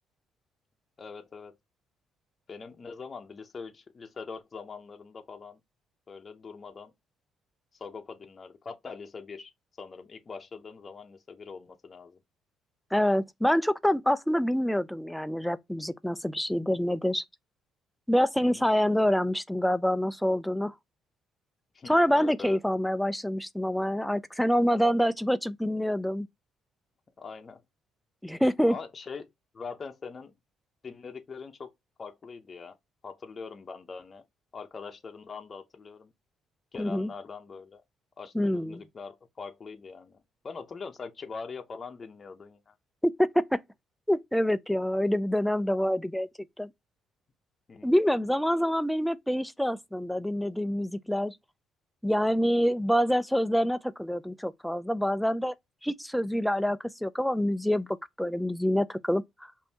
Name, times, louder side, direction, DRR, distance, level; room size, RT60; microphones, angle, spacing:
voice 1, 1.0-1.6 2.5-5.6 6.1-6.9 7.7-9.5 9.8-12.2 18.4-18.7 21.7-22.6 24.7-24.9 27.2-27.6 28.6-29.3 29.5-30.3 30.8-31.7 32.0-32.8 33.0-34.2 34.5-36.1 36.7-37.8 38.2-40.2 40.4-42.7 47.7-47.9, left 5 dB, 35° left, 0.7 m, -42 dB
voice 2, 12.9-17.2 18.1-20.7 21.9-26.3 28.2-28.8 36.8-37.1 38.3-38.8 43.2-43.6 44.1-46.3 46.6-46.7 47.8-51.3 52.0-55.5 55.8-57.9 58.2-59.5, equal, ahead, 0.3 m, -26 dB
5.2 x 2.7 x 2.7 m
cardioid pair, 110°, 0 cm